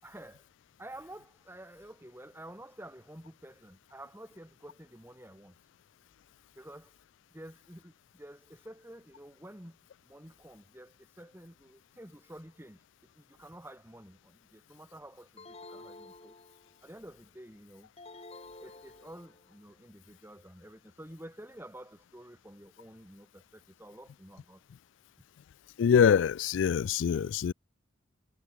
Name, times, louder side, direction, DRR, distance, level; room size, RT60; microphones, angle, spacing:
voice 1, 0.0-0.5 0.8-5.5 6.5-7.0 7.3-9.8 10.0-12.8 13.1-16.4 16.8-17.9 18.6-24.6, right 1 dB, 10° right, 4.9 m, -50 dB
sound 1, 15.4-16.9 18.0-19.5, left 2 dB, 35° left, 4.6 m, -50 dB
voice 2, 25.8-27.5, left 7 dB, 75° left, 0.3 m, -24 dB
head